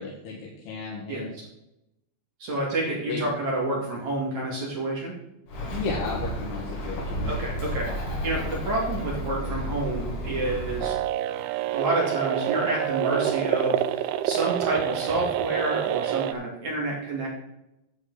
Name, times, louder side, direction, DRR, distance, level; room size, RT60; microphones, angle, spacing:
voice 1, 0.0-1.3 3.1-3.2 5.7-7.3, left 4 dB, 80° left, -2 dB, 3.5 m, -33 dB
voice 2, 1.1-1.5 2.4-5.1 7.2-11.0 11.3-11.4 11.7-17.3, right 2 dB, 50° right, -3 dB, 3.2 m, -29 dB
Bird, 5.5-10.9, equal, 55° left, 3.5 m, -32 dB
sound 1, 10.8-16.3, right 12 dB, 85° right, 2.6 m, -27 dB
11.0 x 8.7 x 4.0 m, 0.89 s
omnidirectional pair, 4.6 m